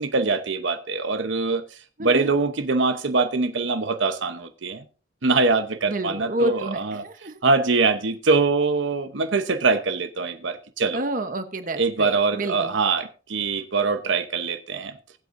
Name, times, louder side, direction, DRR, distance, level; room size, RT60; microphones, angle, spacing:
voice 1, 0.0-1.6 2.0-4.8 5.2-7.0 7.4-11.0 11.8-14.9, right 3 dB, 75° right, 0.9 m, -23 dB
voice 2, 2.0-2.3 5.9-7.4 10.9-12.8, right 1 dB, 45° right, 1.0 m, -29 dB
20.5 x 8.1 x 2.6 m
head